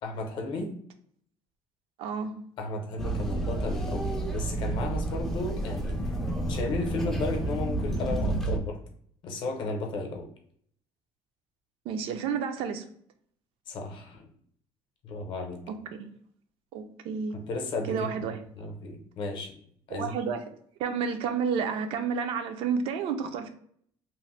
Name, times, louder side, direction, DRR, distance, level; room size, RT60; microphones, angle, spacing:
voice 1, 0.0-0.7 2.6-6.2 6.5-8.8 9.2-10.3 13.7-14.3 15.0-15.6 17.3-18.2 18.6-19.5 19.9-20.2, left 2 dB, 50° left, 4 dB, 0.6 m, -34 dB
voice 2, 2.0-2.4 11.9-12.8 15.7-15.8 16.7-17.4 17.9-18.4 19.9-20.4 20.8-23.5, right 6 dB, 65° right, 8 dB, 0.4 m, -30 dB
sound 1, 3.0-8.6, right 2 dB, 5° left, 0.3 m, -30 dB
2.9 x 2.0 x 3.0 m, 0.62 s
cardioid pair, 160°, 10 cm